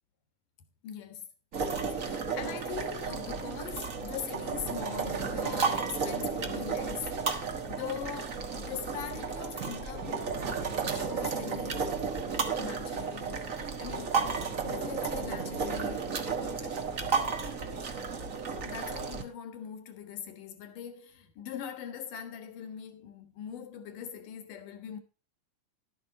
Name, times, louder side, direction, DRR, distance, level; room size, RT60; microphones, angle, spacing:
voice 1, 0.8-1.3 1.7-7.2 7.7-10.3 10.9-11.9 12.6-14.3 14.6-16.9 18.6-25.0, left 8 dB, 80° left, 3.1 m, -42 dB
sound 1, 1.5-19.2, right 5 dB, 55° right, 0.9 m, -33 dB
12.0 x 9.5 x 3.9 m
omnidirectional pair, 3.7 m